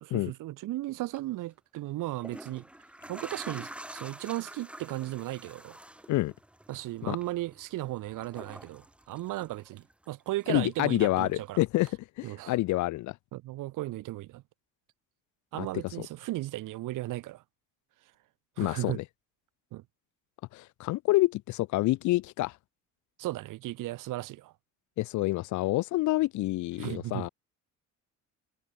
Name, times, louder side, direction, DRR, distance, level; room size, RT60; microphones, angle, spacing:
voice 1, 0.1-2.6 3.1-5.8 6.7-11.6 12.2-12.5 13.3-14.4 15.5-17.4 18.6-19.0 19.7-19.8 23.2-24.5 26.8-27.3, right 17 dB, 75° right, 1.1 m, -36 dB
sound 1, 1.0-1.2 2.0-10.1 10.4-11.4 11.9-12.0, right 1 dB, 5° right, 2.1 m, -47 dB
voice 2, 10.5-11.9 12.2-13.1 15.6-15.7 16.0-16.1 18.6-19.0 20.5-22.5 25.0-27.3, left 18 dB, 65° left, 0.5 m, -27 dB
cardioid pair, 165°, 32 cm